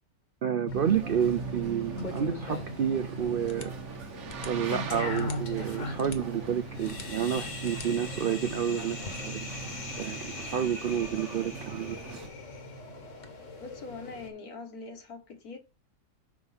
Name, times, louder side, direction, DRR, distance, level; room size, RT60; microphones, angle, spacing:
voice 1, 0.4-3.7 4.5-9.5 10.0-12.0, right 8 dB, 70° right, 0.5 m, -30 dB
sound 1, 0.6-13.3, left 4 dB, 35° left, 0.9 m, -48 dB
sound 2, 0.7-14.3, equal, 55° left, 1.6 m, -39 dB
Boat Water vehicle, 0.8-12.3, right 5 dB, 55° right, 1.2 m, -44 dB
voice 2, 13.6-15.6, left 3 dB, 70° left, 1.9 m, -43 dB
6.2 x 4.4 x 5.5 m
omnidirectional pair, 1.6 m